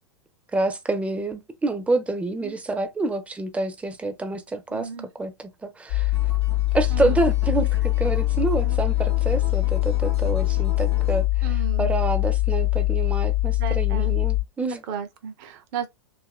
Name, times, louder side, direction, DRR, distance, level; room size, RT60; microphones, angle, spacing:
voice 1, 0.5-4.9 5.2-6.1 6.7-11.3 11.8-14.8, right 2 dB, 10° right, 0.6 m, -27 dB
voice 2, 4.7-5.1 6.9-7.3 8.6-8.8 11.4-11.9 13.6-14.1 14.9-15.9, right 6 dB, 45° right, 0.7 m, -34 dB
sound 1, 5.9-14.4, left 19 dB, 45° left, 0.5 m, -23 dB
Acoustic guitar, 6.1-11.3, left 2 dB, 85° left, 0.9 m, -40 dB
2.8 x 2.5 x 2.4 m
figure-of-eight pair, 90°, 14 cm